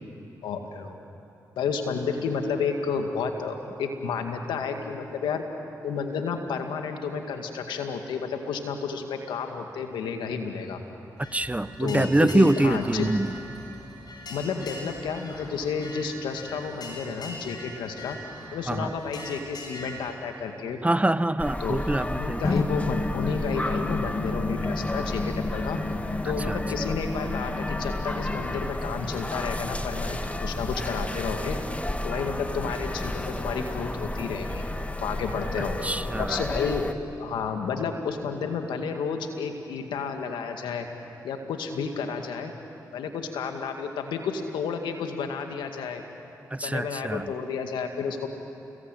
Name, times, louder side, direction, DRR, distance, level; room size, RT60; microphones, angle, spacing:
voice 1, 0.4-1.0 1.6-5.4 5.8-10.8 11.8-13.1 14.3-18.2 18.5-20.8 21.6-21.8 22.2-25.8 26.2-31.6 32.0-34.6 35.0-35.8 36.2-36.9 37.2-40.9 41.2-42.5 42.9-46.0 46.6-48.3, left 5 dB, 85° left, 5 dB, 2.1 m, -31 dB
sound 1, 11.2-20.1, left 1 dB, 60° left, 7.4 m, -42 dB
voice 2, 11.3-13.4 18.7-18.9 20.8-22.5 26.5-26.6 35.8-36.4 46.5-47.3, right 2 dB, 15° right, 15 dB, 0.9 m, -24 dB
sound 2, 21.4-36.9, left 1 dB, 15° left, 1.9 m, -32 dB
sound 3, 22.4-28.7, left 3 dB, 40° left, 1.5 m, -31 dB
30.0 x 21.0 x 9.2 m, 2.8 s
supercardioid pair, 45°, 8 cm